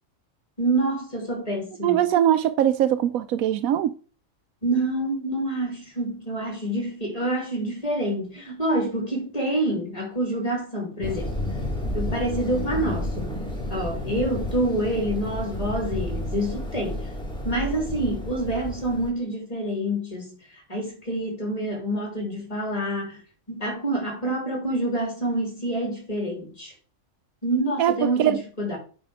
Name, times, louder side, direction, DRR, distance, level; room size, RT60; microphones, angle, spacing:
voice 1, 0.6-2.0 4.6-11.4 11.9-13.3 13.7-17.0 17.4-20.3 20.7-23.2 23.5-26.7 27.4-28.8, right 1 dB, 25° left, 3.3 m, -27 dB
voice 2, 1.8-3.9 27.8-28.4, right 11 dB, 85° right, 1.0 m, -21 dB
sound 1, 11.0-19.1, left 1 dB, 5° left, 1.9 m, -31 dB
9.0 x 4.2 x 4.8 m
omnidirectional pair, 1.4 m